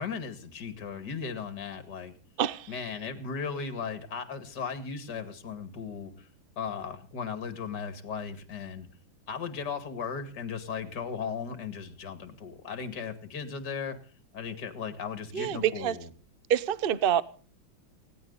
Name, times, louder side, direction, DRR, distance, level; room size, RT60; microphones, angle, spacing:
voice 1, 0.0-2.1 2.7-6.3 6.6-8.9 9.3-14.0 14.3-16.1, left 6 dB, 50° left, 2.7 m, -36 dB
voice 2, 2.4-2.7 15.3-16.0 16.5-17.2, right 9 dB, 60° right, 0.5 m, -26 dB
20.0 x 17.5 x 4.0 m
omnidirectional pair, 2.3 m